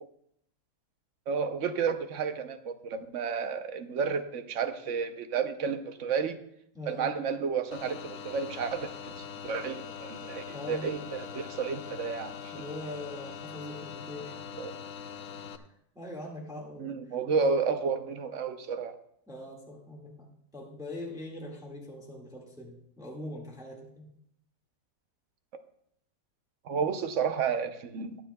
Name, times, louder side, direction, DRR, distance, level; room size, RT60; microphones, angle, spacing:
voice 1, 1.3-6.4 6.9-12.6 14.6-14.7 16.8-19.0 26.6-28.2, right 6 dB, 55° right, 8 dB, 0.9 m, -31 dB
voice 2, 6.7-7.1 10.5-10.9 12.5-14.4 15.6-15.7 15.9-17.0 17.4-17.5 19.3-24.0, left 1 dB, ahead, -2 dB, 1.6 m, -42 dB
sound 1, 7.7-15.6, left 7 dB, 60° left, 0.9 m, -42 dB
22.5 x 7.5 x 2.2 m, 0.71 s
omnidirectional pair, 1.8 m